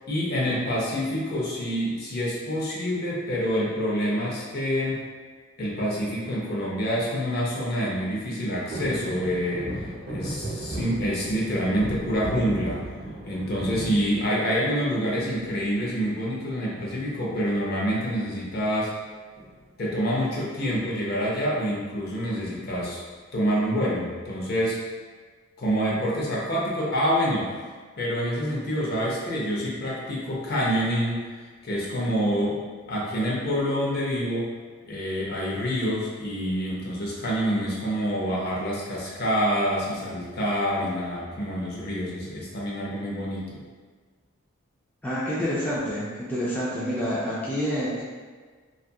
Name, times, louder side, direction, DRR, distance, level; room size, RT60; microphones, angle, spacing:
voice 1, 0.1-5.1 5.6-12.8 13.2-18.9 19.8-23.0 23.3-24.8 25.6-27.5 28.0-31.2 31.6-34.5 34.9-43.6, equal, 50° left, -5 dB, 0.6 m, -27 dB
sound 1, 8.7-14.9 15.3-15.9 17.2-17.6 17.8-17.9 18.2-18.5 19.4-20.3 20.8-20.9, right 1 dB, 65° right, 0.8 m, -36 dB
voice 2, 45.0-48.0, equal, 10° left, -9 dB, 0.3 m, -28 dB
2.7 x 2.4 x 2.3 m, 1.5 s
head